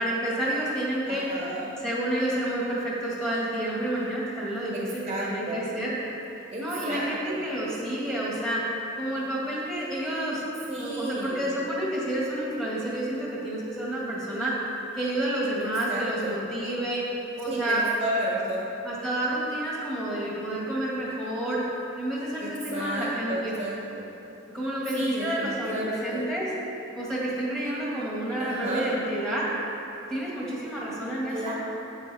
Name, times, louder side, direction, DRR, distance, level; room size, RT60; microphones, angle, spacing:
voice 1, 0.0-1.4 1.8-6.0 6.6-10.4 10.8-14.6 14.9-17.1 17.4-17.9 18.8-21.7 22.0-23.5 24.5-26.5 26.9-29.5 30.1-31.5, right 1 dB, ahead, -6 dB, 1.7 m, -29 dB
voice 2, 1.1-1.7 4.7-4.8 5.1-5.6 6.5-7.4 10.7-11.5 15.9-16.4 17.5-18.6 22.4-24.1 24.9-26.2 28.4-28.9 31.3-31.5, right 1 dB, 30° right, -4 dB, 1.1 m, -33 dB
9.1 x 8.4 x 4.1 m, 3.0 s
head